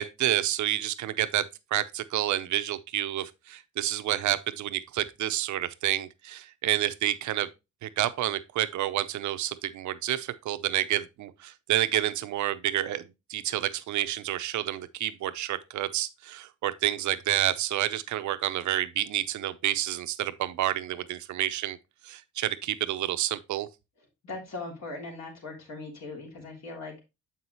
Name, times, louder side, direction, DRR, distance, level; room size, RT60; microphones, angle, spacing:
voice 1, 0.0-1.5 1.7-7.5 7.8-21.8 22.0-23.7, right 13 dB, 70° right, 0.7 m, -29 dB
voice 2, 24.2-27.0, left 3 dB, 60° left, 3.3 m, -39 dB
7.2 x 5.6 x 3.0 m
cardioid pair, 90°, 30 cm